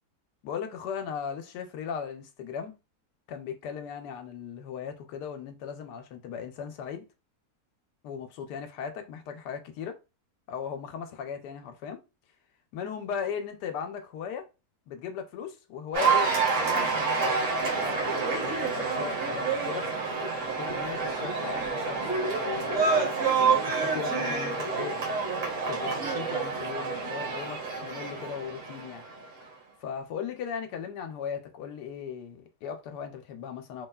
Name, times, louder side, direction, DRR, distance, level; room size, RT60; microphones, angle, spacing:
voice 1, 0.4-2.7 3.3-7.0 8.0-10.0 10.5-12.0 12.7-14.5 14.9-17.4 17.8-19.9 20.6-25.0 25.7-29.0 29.8-33.9, left 7 dB, 90° left, 1.2 m, -37 dB
Cheering / Applause, 15.9-29.3, right 4 dB, 55° right, 1.1 m, -28 dB
3.3 x 2.3 x 2.2 m
omnidirectional pair, 1.7 m